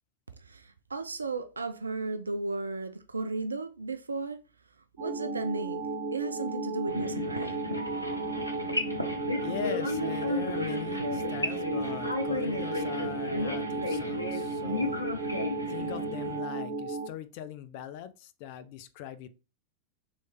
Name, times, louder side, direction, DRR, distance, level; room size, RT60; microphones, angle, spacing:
voice 1, 0.4-4.4 5.0-7.6, right 3 dB, 75° right, 0.3 m, -35 dB
sound 1, 5.0-17.1, right 3 dB, 35° right, 1.0 m, -35 dB
sound 2, 6.9-16.4, left 2 dB, 90° left, 0.7 m, -33 dB
voice 2, 9.4-15.4 15.7-19.3, left 9 dB, 45° left, 0.4 m, -41 dB
3.2 x 3.2 x 4.1 m
figure-of-eight pair, 90°, 0 cm